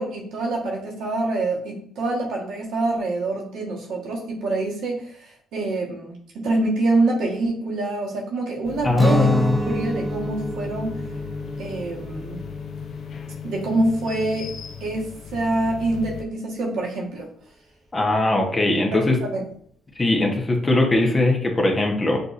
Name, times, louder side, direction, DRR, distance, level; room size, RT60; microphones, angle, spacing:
voice 1, 0.0-11.0 11.6-12.4 13.4-14.5 14.8-17.3 18.9-19.4, right 2 dB, 85° right, -3 dB, 1.4 m, -26 dB
sound 1, 8.6-16.2, left 8 dB, 60° left, 0.5 m, -36 dB
voice 2, 8.8-9.6 17.9-19.2 20.0-22.2, left 2 dB, 25° left, 1 dB, 1.0 m, -20 dB
Guitar, 8.9-14.8, right 1 dB, 5° right, 0.5 m, -30 dB
6.5 x 2.7 x 2.5 m, 0.63 s
cardioid pair, 90°, 0 cm